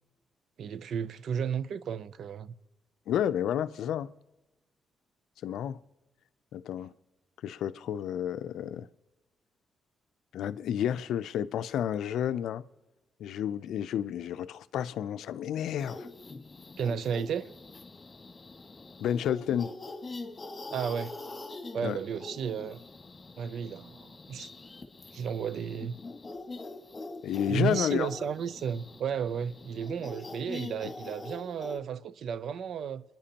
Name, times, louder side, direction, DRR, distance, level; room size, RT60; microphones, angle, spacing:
voice 1, 0.6-2.5 16.8-17.5 20.7-21.1 21.7-22.8 23.4-24.5 25.1-26.0 27.5-33.0, right 7 dB, 70° right, 0.5 m, -33 dB
voice 2, 3.1-4.1 5.4-5.8 6.5-6.9 7.4-8.9 10.3-12.6 13.2-16.1 19.0-19.7 21.8-22.0 27.2-28.1, left 10 dB, 80° left, 0.5 m, -31 dB
sound 1, 15.8-31.8, left 3 dB, 30° left, 1.8 m, -44 dB
26.5 x 10.5 x 2.9 m
cardioid pair, 75°, 0 cm